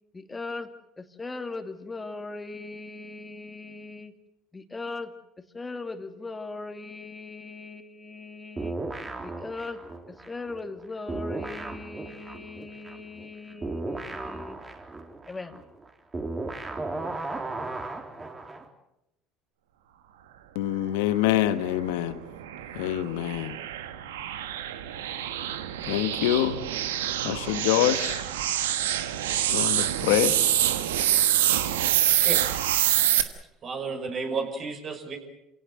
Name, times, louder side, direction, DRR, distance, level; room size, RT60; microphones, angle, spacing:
voice 1, 0.1-4.1 4.5-8.8 9.2-14.7 15.3-15.6, left 3 dB, 20° left, 7 dB, 2.6 m, -39 dB
sound 1, 8.6-10.8 11.1-18.7, right 2 dB, 25° right, 3.7 m, -35 dB
voice 2, 20.5-22.2 22.7-23.6 25.9-26.6 27.2-28.2 29.5-30.4, left 13 dB, 75° left, 12 dB, 1.4 m, -25 dB
sound 2, 21.7-33.2, right 11 dB, 85° right, 1.3 m, -26 dB
voice 3, 33.6-35.2, right 4 dB, 50° right, 3 dB, 6.0 m, -32 dB
27.5 x 17.5 x 7.7 m, 0.86 s
hypercardioid pair, 70°, 0 cm